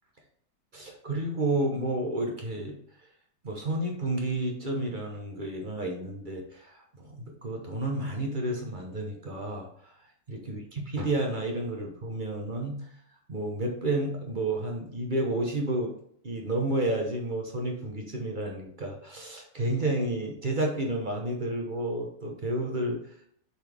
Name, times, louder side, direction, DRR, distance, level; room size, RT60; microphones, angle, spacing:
voice 1, 0.7-2.8 3.4-9.7 10.3-12.9 13.3-15.9 16.2-23.0, right 1 dB, 35° right, 1 dB, 0.9 m, -31 dB
7.2 x 4.2 x 3.4 m, 0.65 s
omnidirectional pair, 1.9 m